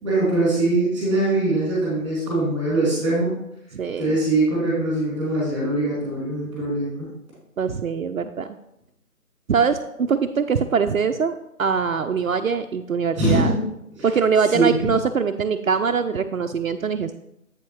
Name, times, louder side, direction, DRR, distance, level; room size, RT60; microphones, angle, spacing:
voice 1, 0.0-3.3 4.0-7.1 13.2-13.6 14.0-14.1 14.4-14.7, right 2 dB, 5° right, -7 dB, 2.8 m, -22 dB
voice 2, 3.7-4.2 7.6-8.5 9.5-13.5 14.0-17.2, right 6 dB, 65° right, 7 dB, 0.5 m, -23 dB
8.0 x 7.1 x 3.1 m, 0.80 s
figure-of-eight pair, 155°, 44 cm